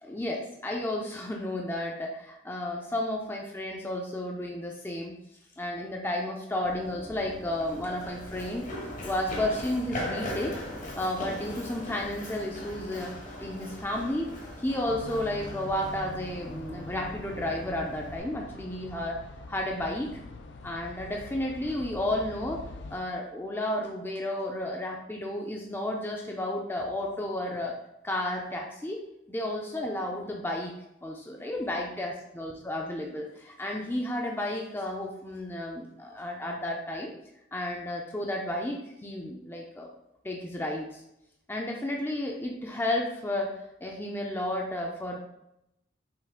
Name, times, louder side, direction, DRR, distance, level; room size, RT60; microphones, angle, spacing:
voice 1, 0.0-5.1 5.6-8.7 9.0-10.6 11.0-13.1 13.4-14.3 14.6-19.2 19.5-20.2 20.6-22.6 22.9-27.8 28.0-29.0 29.3-30.7 31.0-37.1 37.5-39.9 40.2-41.0 41.5-45.2, left 1 dB, 10° left, 0 dB, 0.4 m, -32 dB
Run, 6.6-18.2, left 1 dB, 40° left, 0.8 m, -40 dB
sound 1, 14.9-23.0, left 3 dB, 65° left, 0.4 m, -44 dB
5.7 x 2.4 x 3.6 m, 0.82 s
head